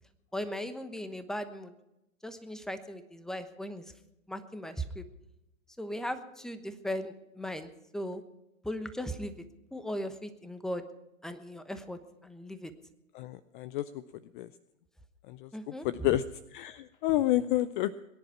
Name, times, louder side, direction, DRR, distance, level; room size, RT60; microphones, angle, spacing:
voice 1, 0.3-1.7 2.2-3.8 4.3-5.0 5.8-8.2 8.6-9.3 9.7-10.8 11.2-12.7 15.5-16.1, equal, ahead, 10 dB, 1.0 m, -38 dB
voice 2, 13.1-14.0 14.3-14.5 15.3-16.2 16.5-17.9, left 14 dB, 35° left, 16 dB, 0.5 m, -30 dB
21.5 x 10.5 x 5.8 m, 0.90 s
hypercardioid pair, 110°, 43 cm